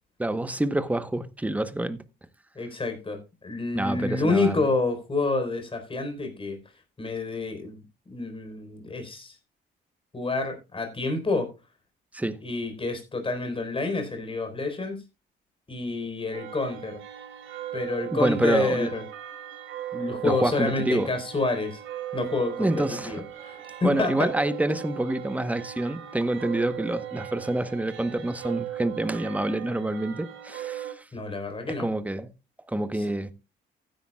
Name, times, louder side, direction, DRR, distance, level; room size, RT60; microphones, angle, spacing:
voice 1, 0.2-2.0 3.7-4.7 12.1-12.4 18.1-18.9 20.2-21.1 22.6-23.2 23.8-31.0 31.8-32.3 32.7-33.3, right 1 dB, 5° right, 1.0 m, -27 dB
voice 2, 2.6-6.6 7.0-7.8 8.1-9.3 10.1-11.5 12.4-15.0 15.7-17.0 17.7-19.0 19.9-21.8 22.1-24.3 31.1-31.9, left 3 dB, 25° left, 4.2 m, -28 dB
sound 1, 16.3-30.9, right 11 dB, 80° right, 2.8 m, -38 dB
15.0 x 10.5 x 2.3 m
cardioid pair, 90°, 20 cm